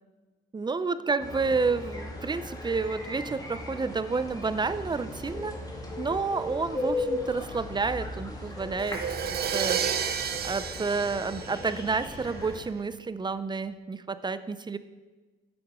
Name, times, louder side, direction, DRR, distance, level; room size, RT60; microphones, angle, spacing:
voice 1, 0.5-5.6 6.0-9.0 9.3-9.8 10.4-14.8, right 4 dB, 20° right, 13 dB, 0.5 m, -30 dB
sound 1, 1.2-12.6, left 2 dB, 20° left, 2.0 m, -37 dB
Crash cymbal, 8.8-12.6, right 7 dB, 55° right, 0.8 m, -31 dB
10.5 x 6.9 x 4.9 m, 1.3 s
cardioid pair, 90°, 20 cm